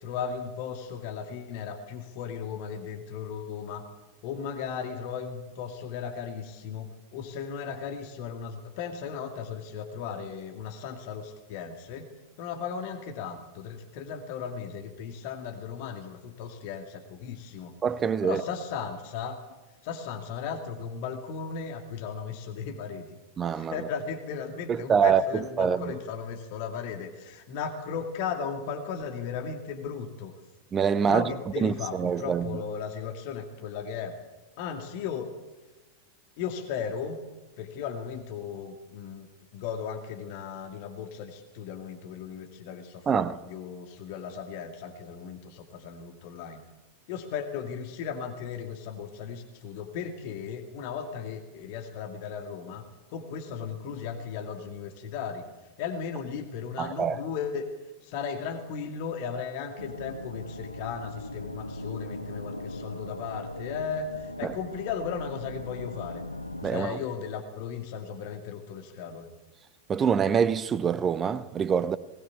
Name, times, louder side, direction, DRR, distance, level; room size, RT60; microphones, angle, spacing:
voice 1, 0.0-3.9 4.2-12.1 12.4-17.8 18.2-19.4 19.8-23.1 23.6-30.3 31.1-34.2 34.6-35.3 36.4-37.2 37.6-39.3 39.5-46.6 47.1-52.8 53.1-55.4 55.8-57.7 58.0-66.2 66.6-69.3, left 6 dB, 45° left, 2.3 m, -36 dB
voice 2, 17.8-18.4 23.4-23.9 24.7-25.9 30.7-31.2 31.6-32.6 43.1-43.4 56.8-57.2 64.4-64.6 66.6-67.0 69.9-72.0, right 7 dB, 25° right, 0.8 m, -25 dB
sound 1, 59.8-66.7, left 1 dB, 85° left, 1.0 m, -39 dB
20.5 x 18.5 x 8.4 m
figure-of-eight pair, 90°, 0 cm